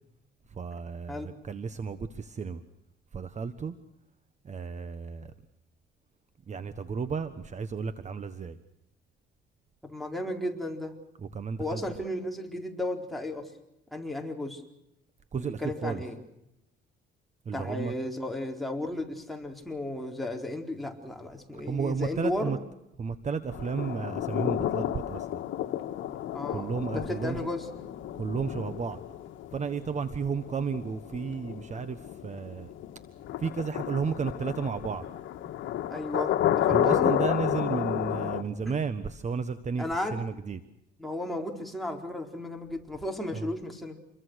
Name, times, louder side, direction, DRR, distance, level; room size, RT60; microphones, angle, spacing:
voice 1, 0.5-2.6 3.1-3.7 4.4-5.3 6.5-8.6 11.3-11.8 15.3-16.0 17.4-17.9 21.7-22.6 23.0-25.3 26.5-27.4 28.2-29.0 29.5-32.7 33.4-35.0 36.7-40.6 43.3-43.5, right 5 dB, 35° right, 11 dB, 1.4 m, -33 dB
voice 2, 9.8-11.0 11.6-13.5 13.9-14.6 15.4-16.2 17.5-22.6 26.3-27.7 35.9-37.1 38.2-38.3 38.6-38.8 39.8-40.2 41.0-44.0, left 1 dB, ahead, 1 dB, 4.4 m, -34 dB
sound 1, 23.5-38.4, left 11 dB, 70° left, 1.7 m, -31 dB
28.0 x 23.0 x 6.5 m, 0.84 s
cardioid pair, 110°, 20 cm